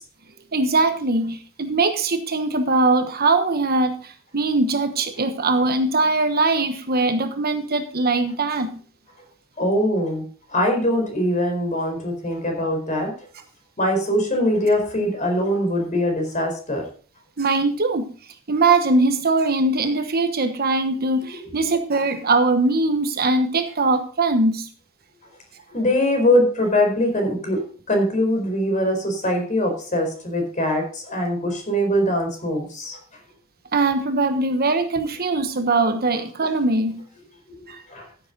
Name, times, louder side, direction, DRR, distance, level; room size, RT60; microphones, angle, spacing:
voice 1, 0.5-8.7 17.4-18.1 18.5-24.7 33.7-37.0 37.7-37.8, right 3 dB, 50° right, 8 dB, 1.2 m, -21 dB
voice 2, 9.6-10.2 10.5-13.1 13.8-16.8 25.7-33.0 37.5-37.6 37.9-38.1, left 1 dB, 35° left, 4 dB, 4.4 m, -22 dB
14.5 x 7.9 x 4.0 m, 0.41 s
head